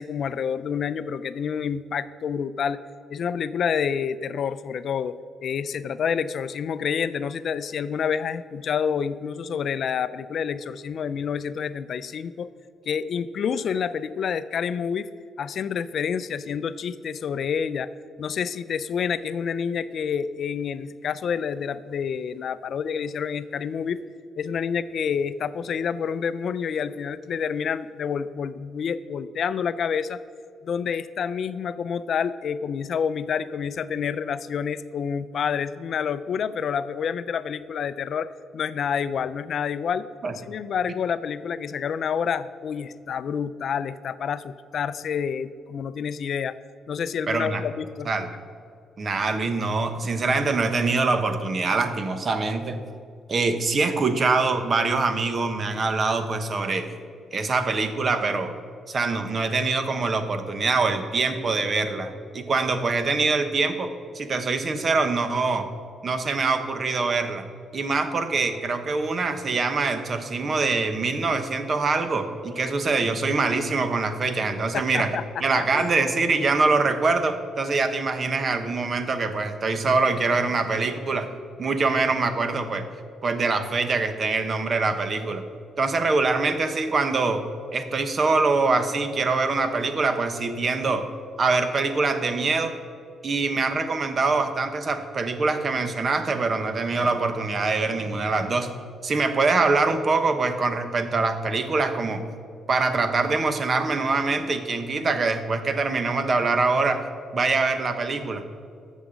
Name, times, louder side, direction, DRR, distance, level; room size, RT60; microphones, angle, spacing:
voice 1, 0.0-2.8 3.1-5.2 5.4-12.5 12.9-15.1 15.4-17.9 18.2-24.0 24.4-30.2 30.6-38.3 38.5-40.1 40.4-46.6 46.9-48.1 74.7-75.2 75.5-75.9, left 7 dB, 60° left, 14 dB, 0.4 m, -28 dB
voice 2, 47.3-47.6 48.1-48.3 49.0-52.8 53.3-56.9 57.3-58.5 58.9-63.9 64.1-65.7 66.0-67.5 67.7-81.3 81.6-82.9 83.2-85.4 85.8-87.4 87.7-91.1 91.4-92.7 93.2-98.7 99.0-102.2 102.7-107.1 107.3-108.4, right 3 dB, 40° right, 9 dB, 1.0 m, -24 dB
13.0 x 7.3 x 5.1 m, 2.2 s
cardioid pair, 90°, 0 cm